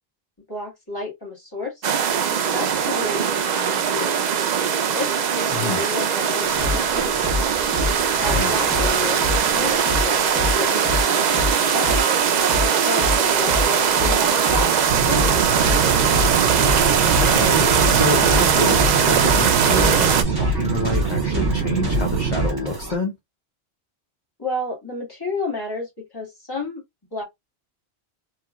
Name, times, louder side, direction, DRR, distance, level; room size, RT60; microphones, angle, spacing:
voice 1, 0.5-1.9 2.3-4.1 4.9-7.4 8.2-12.1 12.6-16.0 24.4-26.8 27.1-27.2, left 2 dB, 20° left, 1.8 m, -32 dB
sound 1, 1.8-20.2, right 7 dB, 55° right, 0.5 m, -20 dB
sound 2, 6.4-23.0, left 2 dB, 20° right, 1.2 m, -28 dB
sound 3, 14.9-22.5, right 6 dB, 75° right, 0.9 m, -24 dB
voice 2, 17.2-23.1, left 3 dB, 45° left, 0.9 m, -27 dB
3.2 x 2.9 x 2.3 m
omnidirectional pair, 1.1 m